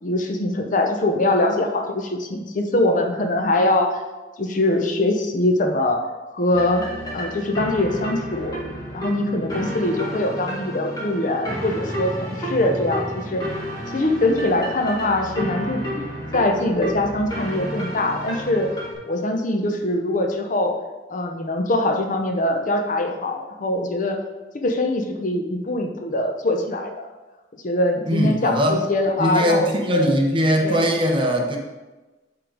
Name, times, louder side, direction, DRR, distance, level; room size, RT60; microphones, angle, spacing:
voice 1, 0.0-4.0 4.4-6.0 6.3-6.9 7.1-8.6 8.9-13.4 13.9-18.7 19.1-20.7 21.1-24.2 24.6-27.1 27.6-30.1 30.6-30.9, left 1 dB, 45° left, 4 dB, 0.7 m, -22 dB
sound 1, 6.5-18.9, equal, 25° left, 1.8 m, -31 dB
voice 2, 28.1-28.8 29.2-31.6, equal, 30° right, 1 dB, 0.9 m, -20 dB
7.8 x 3.8 x 4.8 m, 1.2 s
head